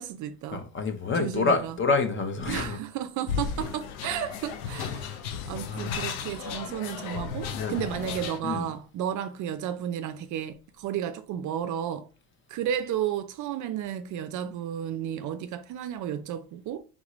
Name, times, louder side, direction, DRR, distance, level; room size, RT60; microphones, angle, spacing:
voice 1, 0.0-0.6 1.2-1.7 2.5-5.1 5.5-12.1 12.5-16.8, right 10 dB, 45° right, 0.5 m, -33 dB
voice 2, 0.5-2.8 5.0-5.1 5.7-6.0 7.5-7.8 8.4-8.7, left 4 dB, 30° left, 0.8 m, -28 dB
sound 1, 3.3-8.4, left 7 dB, 90° left, 0.7 m, -34 dB
3.7 x 3.7 x 3.0 m
supercardioid pair, 105°, 42 cm